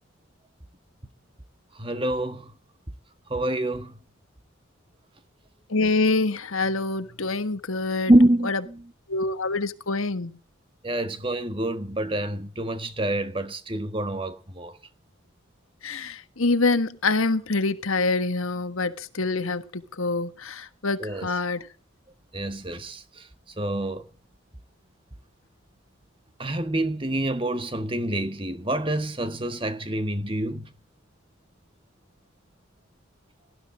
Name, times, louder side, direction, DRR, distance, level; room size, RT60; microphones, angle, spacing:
voice 1, 1.8-2.5 3.3-3.9 8.1-8.9 10.8-14.7 21.0-21.3 22.3-23.3 23.6-24.1 26.4-30.7, right 1 dB, 25° right, 1.6 m, -26 dB
voice 2, 5.7-8.1 8.5-8.6 9.1-10.4 15.8-21.7, left 3 dB, 80° left, 1.5 m, -26 dB
19.0 x 12.5 x 5.1 m
head